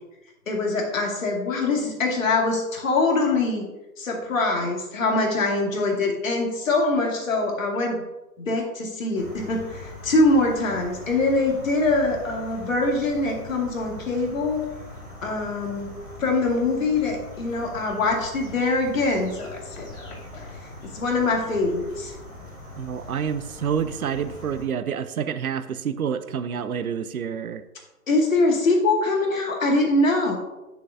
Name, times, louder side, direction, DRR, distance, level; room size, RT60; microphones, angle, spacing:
voice 1, 0.5-3.6 4.0-8.0 8.4-14.6 15.2-15.9 16.2-20.5 20.8-22.1 28.1-30.4, left 2 dB, 55° left, 0 dB, 2.2 m, -23 dB
sound 1, 9.1-24.6, left 2 dB, 5° left, 1.0 m, -42 dB
voice 2, 22.8-27.6, right 7 dB, 65° right, 12 dB, 0.7 m, -28 dB
9.4 x 6.9 x 2.6 m, 1.0 s
figure-of-eight pair, 145°, 47 cm